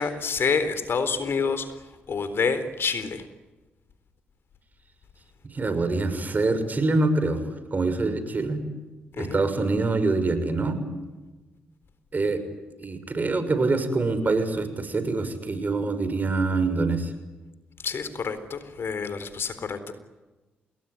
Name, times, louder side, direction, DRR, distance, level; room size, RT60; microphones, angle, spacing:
voice 1, 0.0-1.7 2.1-3.2 9.2-9.4 17.8-19.9, left 5 dB, 55° left, 12 dB, 3.9 m, -27 dB
voice 2, 5.5-7.4 7.7-8.6 9.2-10.8 12.1-12.4 12.8-17.1, right 3 dB, 40° right, 10 dB, 6.4 m, -25 dB
29.5 x 20.0 x 9.7 m, 1.2 s
supercardioid pair, 50°, 5 cm